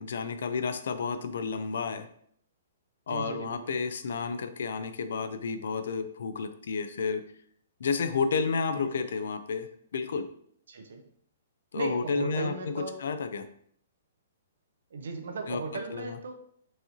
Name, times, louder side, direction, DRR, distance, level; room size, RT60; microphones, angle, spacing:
voice 1, 0.0-2.1 3.1-7.2 7.8-10.3 11.7-13.4 15.5-15.6 15.9-16.2, left 5 dB, 60° left, 10 dB, 0.3 m, -31 dB
voice 2, 3.1-3.6 8.7-9.0 10.7-11.0 11.7-13.0 14.9-16.4, right 3 dB, 70° right, 5 dB, 0.6 m, -37 dB
4.6 x 2.7 x 3.0 m, 0.65 s
hypercardioid pair, 180°, 0 cm